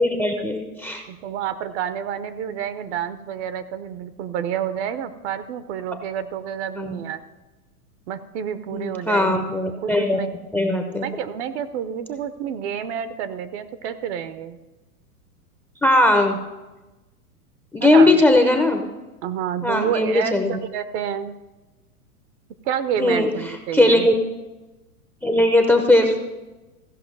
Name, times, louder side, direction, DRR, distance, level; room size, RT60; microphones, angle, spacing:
voice 1, 0.0-1.0 6.8-7.0 8.7-10.2 10.5-11.1 15.8-16.4 17.7-18.8 19.6-20.6 23.0-23.3 23.7-24.1 25.2-26.2, left 2 dB, 5° left, 5 dB, 0.6 m, -18 dB
voice 2, 1.1-7.2 8.1-9.4 9.8-10.3 11.0-14.6 17.8-18.2 19.2-21.3 22.6-24.1, right 9 dB, 50° right, 12 dB, 0.8 m, -29 dB
15.5 x 5.5 x 5.4 m, 1.1 s
hypercardioid pair, 120°, 46 cm